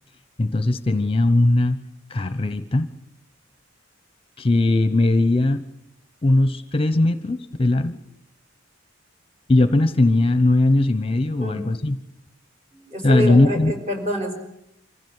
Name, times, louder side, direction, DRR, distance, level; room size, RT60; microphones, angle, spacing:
voice 1, 0.4-1.8 2.1-2.9 4.4-5.6 6.2-8.0 9.5-12.0 13.0-13.7, left 2 dB, 25° left, 11 dB, 0.9 m, -19 dB
voice 2, 12.7-14.3, equal, 30° right, 3 dB, 5.4 m, -26 dB
25.5 x 15.5 x 9.6 m, 0.77 s
head